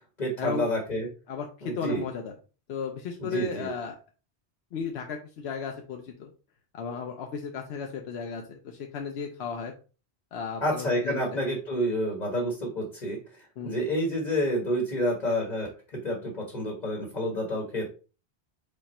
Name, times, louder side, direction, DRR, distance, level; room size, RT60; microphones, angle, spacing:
voice 1, 0.2-1.1 1.6-2.0 3.2-3.7 10.6-13.2 13.6-15.7 16.0-17.9, equal, 45° left, 0 dB, 1.2 m, -29 dB
voice 2, 1.3-2.3 2.7-4.0 4.7-6.3 6.7-9.7 10.3-11.4 13.6-13.8, left 6 dB, 75° left, 3 dB, 0.9 m, -35 dB
5.1 x 2.4 x 4.2 m, 0.34 s
omnidirectional pair, 1.1 m